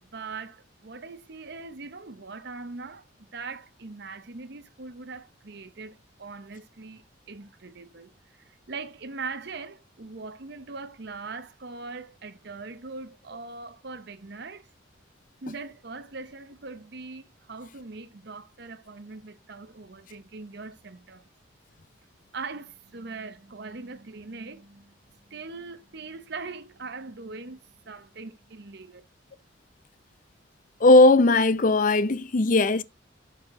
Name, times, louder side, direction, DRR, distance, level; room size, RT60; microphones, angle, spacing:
voice 1, 0.0-14.7 15.4-21.3 22.3-29.0, right 4 dB, 55° right, 0.8 m, -41 dB
voice 2, 30.8-32.8, left 2 dB, 40° left, 0.5 m, -18 dB
11.5 x 5.8 x 3.7 m
head